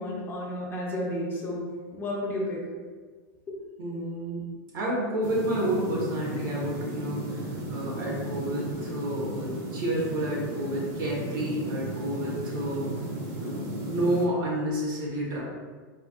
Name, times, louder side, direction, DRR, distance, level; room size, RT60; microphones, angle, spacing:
voice 1, 0.0-1.6 1.9-2.6, left 1 dB, 20° left, -3 dB, 0.6 m, -31 dB
voice 2, 3.8-4.5 4.7-12.9 13.4-13.6 13.9-15.4, right 1 dB, 85° right, -4 dB, 1.1 m, -30 dB
sound 1, 5.2-14.3, right 1 dB, 35° right, 0.6 m, -35 dB
4.3 x 2.2 x 2.4 m, 1.5 s
supercardioid pair, 160°, 11 cm